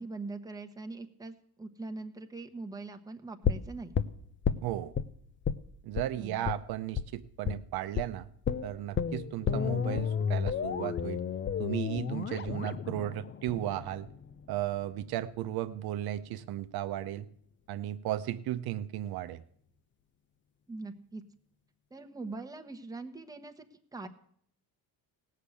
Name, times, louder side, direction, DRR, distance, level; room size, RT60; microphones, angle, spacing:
voice 1, 0.0-3.9 6.1-6.5 20.7-21.2 21.9-24.1, right 3 dB, 10° right, 4 dB, 1.1 m, -42 dB
sound 1, 3.4-5.1 5.4-5.6 5.9-6.1 6.4-6.6 7.0-7.1 7.5-7.6 8.0-8.1 8.5-14.4 14.7-14.8, left 7 dB, 30° left, 0.6 m, -32 dB
voice 2, 4.6-4.9 5.8-8.3 8.6-11.2 11.6-14.1 14.5-17.3 17.7-19.4, right 13 dB, 65° right, 9 dB, 0.8 m, -35 dB
17.0 x 6.6 x 8.4 m, 0.64 s
cardioid pair, 110°, 39 cm